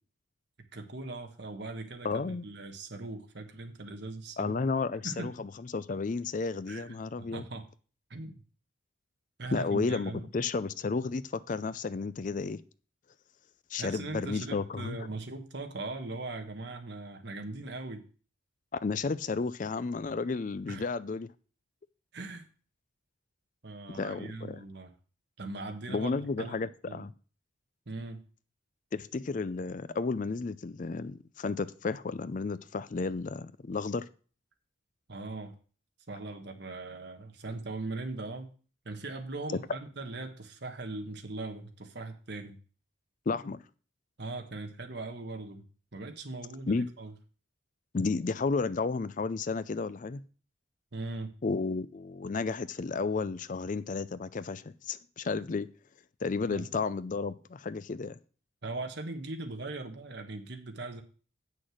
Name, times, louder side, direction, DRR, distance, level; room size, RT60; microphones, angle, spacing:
voice 1, 0.7-4.6 5.0-5.3 6.7-7.6 8.1-8.4 9.4-10.3 13.8-18.1 20.7-20.9 22.1-22.5 23.6-24.9 25.4-26.1 26.4-27.1 27.9-28.2 35.1-35.5 36.1-38.5 38.8-42.6 44.2-45.6 45.9-47.1 50.9-51.3 56.5-56.7 58.6-61.0, right 2 dB, 55° right, 1.3 m, -40 dB
voice 2, 2.0-2.4 4.4-7.4 9.5-12.6 13.7-15.0 18.8-21.3 23.9-24.6 25.9-27.1 28.9-34.1 43.3-43.6 46.7-46.9 47.9-50.2 51.4-55.7 56.2-58.2, left 4 dB, 40° left, 0.4 m, -32 dB
7.7 x 6.4 x 6.3 m
head